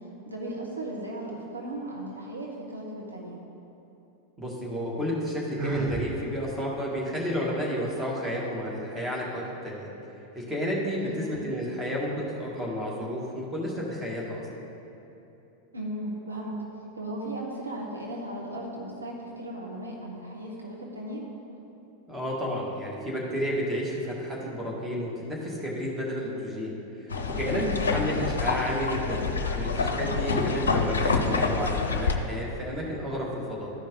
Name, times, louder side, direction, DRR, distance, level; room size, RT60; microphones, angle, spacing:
voice 1, 0.2-3.4 11.0-11.3 15.7-16.6 16.9-21.2 27.5-27.8, right 1 dB, 80° right, -2 dB, 1.2 m, -36 dB
voice 2, 4.4-9.9 10.3-14.5 22.1-26.8 27.3-29.3 29.5-33.7, equal, 10° right, -4 dB, 1.8 m, -31 dB
Sigh, 5.6-6.1, right 4 dB, 35° right, 1.3 m, -30 dB
sound 1, 27.1-32.2, left 4 dB, 70° left, 0.6 m, -27 dB
13.0 x 5.2 x 3.7 m, 3.0 s
figure-of-eight pair, 90°, 0 cm